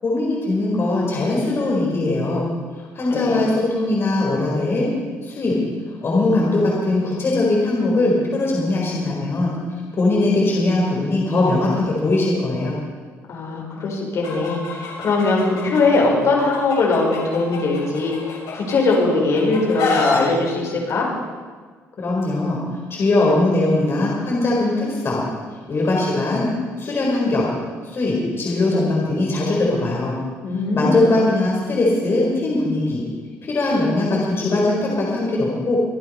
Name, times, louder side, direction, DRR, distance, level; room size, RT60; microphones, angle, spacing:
voice 1, 0.0-2.4 2.9-4.9 5.2-5.6 5.9-9.5 9.9-12.7 22.0-22.6 22.9-25.2 25.7-26.5 26.8-27.5 27.8-30.1 30.7-33.1 33.4-35.8, left 2 dB, 40° left, -4 dB, 4.5 m, -20 dB
voice 2, 3.1-3.4 13.3-21.1 30.4-31.1, left 3 dB, 55° left, -2 dB, 5.1 m, -20 dB
Chicken rooster, 14.2-16.0 16.4-19.0 19.3-20.2, left 4 dB, 85° left, 6.3 m, -26 dB
25.5 x 8.7 x 5.6 m, 1.5 s
cardioid pair, 95°, 6 cm